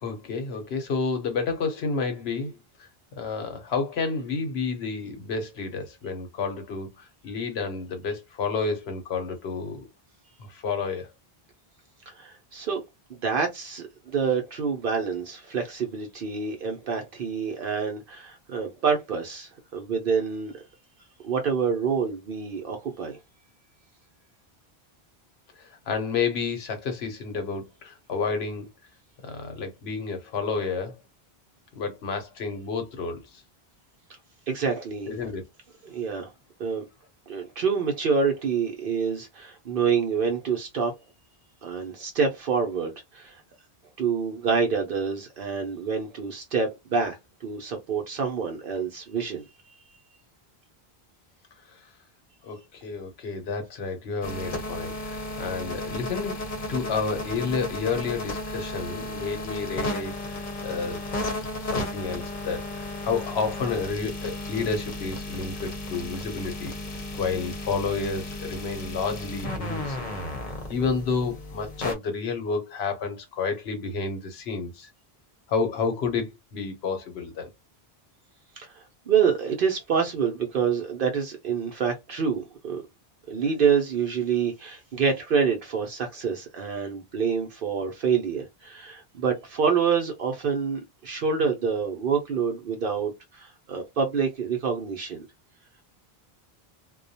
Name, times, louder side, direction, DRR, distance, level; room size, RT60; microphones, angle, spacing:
voice 1, 0.0-9.9 10.4-11.1 25.6-28.7 29.2-31.0 31.7-33.4 35.1-35.5 51.8-51.9 52.4-56.4 56.7-61.0 61.3-66.7 67.2-70.2 70.7-74.9 75.5-77.5, left 4 dB, 85° left, 1.0 m, -30 dB
voice 2, 12.1-12.8 13.1-20.6 21.2-23.2 34.5-35.1 35.8-36.3 36.6-36.8 37.3-40.9 41.6-43.4 44.0-49.4 78.6-82.8 83.3-95.3, right 6 dB, 65° right, 0.8 m, -27 dB
sound 1, 54.2-71.9, left 1 dB, 50° left, 0.8 m, -34 dB
2.3 x 2.1 x 2.6 m
omnidirectional pair, 1.0 m